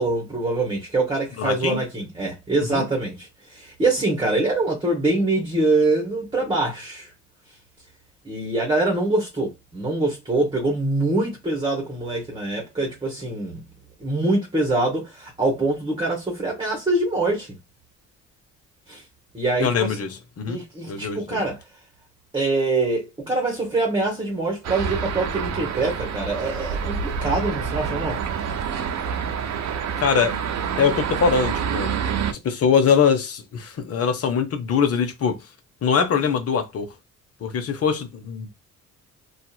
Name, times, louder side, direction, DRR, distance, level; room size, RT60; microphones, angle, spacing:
voice 1, 0.0-7.1 8.2-13.6 14.0-17.5 18.9-19.0 19.3-20.0 20.5-21.6 22.3-28.2, right 2 dB, 15° right, 1.1 m, -24 dB
voice 2, 1.4-1.8 2.7-2.8 19.6-21.4 30.0-30.4 30.8-31.9 32.3-35.4 35.8-36.9 37.4-38.5, left 6 dB, 50° left, 0.9 m, -22 dB
sound 1, 24.6-32.3, right 7 dB, 60° right, 0.7 m, -27 dB
2.8 x 2.4 x 2.3 m
cardioid pair, 90°, 30 cm